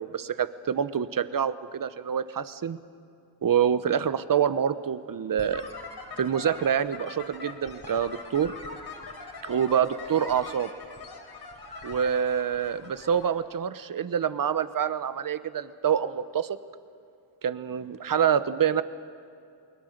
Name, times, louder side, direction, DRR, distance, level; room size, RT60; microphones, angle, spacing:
voice 1, 0.0-2.8 3.4-5.7 6.2-8.5 9.4-10.7 11.8-16.6 17.4-18.8, right 8 dB, 45° right, 13 dB, 1.0 m, -26 dB
sound 1, 5.4-13.3, left 3 dB, 50° left, 4.1 m, -42 dB
29.0 x 21.0 x 6.7 m, 2.6 s
cardioid pair, 85°, 46 cm